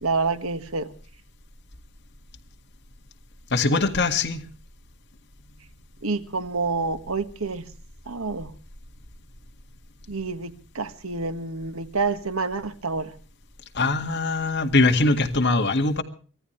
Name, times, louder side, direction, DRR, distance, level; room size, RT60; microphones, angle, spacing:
voice 1, 0.0-0.9 6.0-7.7 8.1-8.5 10.1-13.2, right 4 dB, 75° right, 1.6 m, -28 dB
voice 2, 3.5-4.4 13.7-16.0, left 3 dB, 50° left, 2.0 m, -22 dB
25.0 x 16.0 x 3.3 m
head